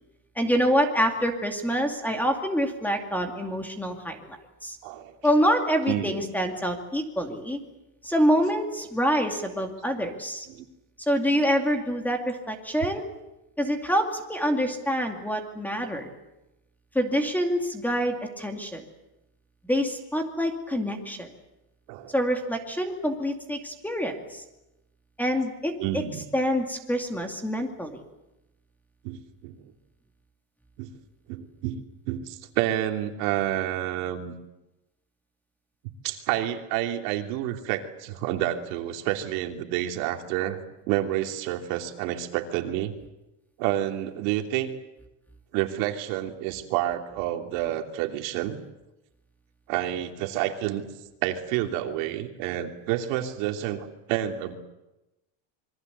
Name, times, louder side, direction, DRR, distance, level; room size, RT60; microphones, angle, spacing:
voice 1, 0.4-4.4 4.6-4.8 5.2-7.6 8.0-10.5 11.1-13.1 13.6-16.1 16.9-18.8 19.6-21.3 22.1-24.4 25.2-26.0 26.3-28.0, equal, 5° left, 4 dB, 2.4 m, -26 dB
voice 2, 5.9-6.2 10.5-10.6 12.8-12.9 21.9-22.1 25.8-26.2 29.0-29.6 30.8-30.9 31.3-34.3 36.0-40.6 40.9-42.9 43.6-44.7 45.5-48.6 49.7-50.9 51.2-54.5, right 13 dB, 65° right, 4 dB, 3.1 m, -29 dB
27.0 x 23.5 x 8.2 m, 0.97 s
cardioid pair, 170°, 43 cm